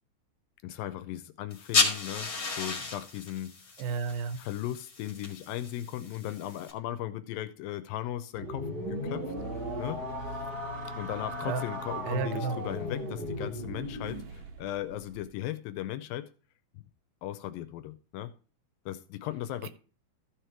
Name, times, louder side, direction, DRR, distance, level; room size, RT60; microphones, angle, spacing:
voice 1, 0.6-3.5 4.3-9.3 9.8-10.4 11.0-16.3 16.7-16.8 17.2-18.3 18.9-19.7, left 13 dB, 80° left, 12 dB, 2.2 m, -37 dB
sound 1, 1.5-6.7, left 4 dB, 35° left, 1.5 m, -33 dB
voice 2, 3.8-4.4 11.5-11.6 12.1-12.5, right 6 dB, 80° right, 12 dB, 2.6 m, -32 dB
sound 2, 8.3-14.3, equal, 25° right, 1.2 m, -36 dB
sound 3, 9.3-15.3, right 4 dB, 65° right, 1.7 m, -47 dB
14.5 x 5.0 x 4.4 m, 0.38 s
omnidirectional pair, 4.4 m